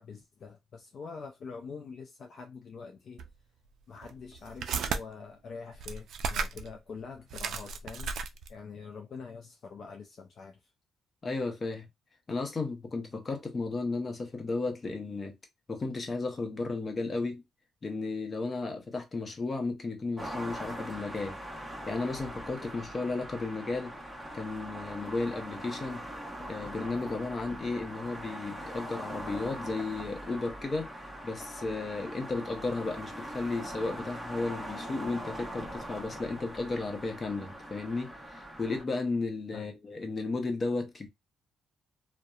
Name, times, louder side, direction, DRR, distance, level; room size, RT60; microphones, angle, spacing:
voice 1, 0.0-3.2 3.9-8.2 8.5-10.7 39.5-39.7, left 5 dB, 55° left, 0.4 m, -45 dB
sound 1, 3.2-3.3 4.0-5.0 5.7-6.7 7.0-7.1 7.3-8.6, right 5 dB, 70° right, 0.3 m, -34 dB
voice 2, 11.2-11.8 12.3-15.4 15.7-17.4 17.8-21.4 21.9-23.9 24.3-26.0 26.5-30.9 31.2-41.1, left 3 dB, 35° left, 0.8 m, -34 dB
sound 2, 20.2-38.8, equal, 5° left, 0.9 m, -42 dB
2.7 x 2.1 x 2.3 m
cardioid pair, 90°, 0 cm